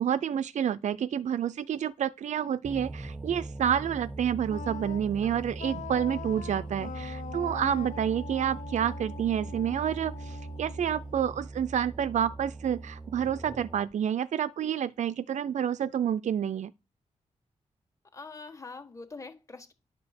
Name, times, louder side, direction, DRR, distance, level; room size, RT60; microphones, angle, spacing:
voice 1, 0.0-16.7, right 9 dB, 70° right, 0.5 m, -29 dB
sound 1, 2.6-13.9, right 2 dB, 15° right, 0.6 m, -40 dB
Wind instrument woodwind instrument, 4.5-11.4, left 8 dB, 75° left, 0.5 m, -43 dB
voice 2, 18.1-19.7, left 3 dB, 25° left, 1.5 m, -44 dB
11.0 x 5.0 x 6.5 m
wide cardioid pair, 135°, 13 cm